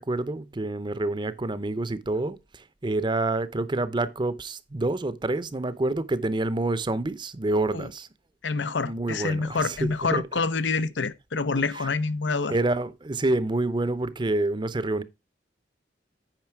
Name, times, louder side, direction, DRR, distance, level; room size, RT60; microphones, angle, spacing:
voice 1, 0.0-8.1 8.8-10.4 11.7-11.9 12.5-15.0, right 2 dB, 25° right, 0.6 m, -28 dB
voice 2, 8.4-12.5, left 4 dB, 90° left, 0.8 m, -27 dB
9.0 x 5.6 x 4.5 m
head